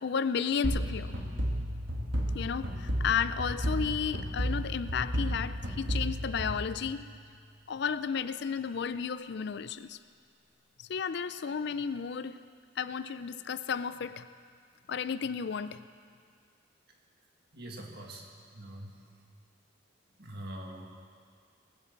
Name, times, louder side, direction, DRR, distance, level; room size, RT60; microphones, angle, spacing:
voice 1, 0.0-1.2 2.3-7.0 7.7-10.0 10.8-12.4 12.8-14.3 14.9-15.8, left 6 dB, 55° left, 13 dB, 0.4 m, -33 dB
sound 1, 0.6-7.3, equal, 70° right, 2.0 m, -33 dB
voice 2, 17.5-18.3 18.5-19.0 20.2-20.9, right 1 dB, 55° right, 1 dB, 1.9 m, -43 dB
19.5 x 7.7 x 7.3 m, 2.1 s
head